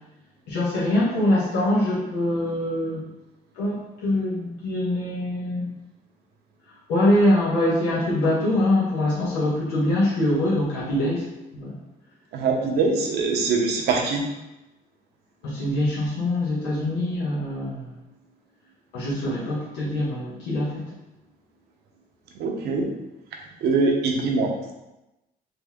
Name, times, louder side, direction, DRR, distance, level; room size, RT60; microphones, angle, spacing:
voice 1, 0.5-3.0 3.5-5.7 6.9-11.3 11.5-11.7 15.4-17.8 18.9-20.8, left 1 dB, 90° left, -8 dB, 1.2 m, -23 dB
voice 2, 12.3-14.2 22.4-22.9 23.6-24.5, right 4 dB, 75° right, 1 dB, 0.9 m, -23 dB
3.9 x 2.9 x 3.6 m, 0.96 s
cardioid pair, 110°, 17 cm